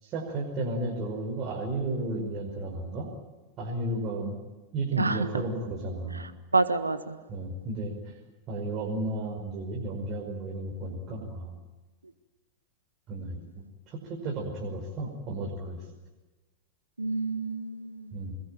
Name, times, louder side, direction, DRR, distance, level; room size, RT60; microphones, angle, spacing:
voice 1, 0.0-3.1 3.6-4.4 4.7-6.2 7.3-8.2 8.5-11.6 13.1-15.8 18.1-18.3, right 2 dB, 35° right, -2 dB, 5.5 m, -33 dB
voice 2, 5.0-5.4 6.1-7.2 17.0-18.2, right 3 dB, 80° right, 12 dB, 1.5 m, -29 dB
26.5 x 21.0 x 9.1 m, 1.2 s
figure-of-eight pair, 90°, 0 cm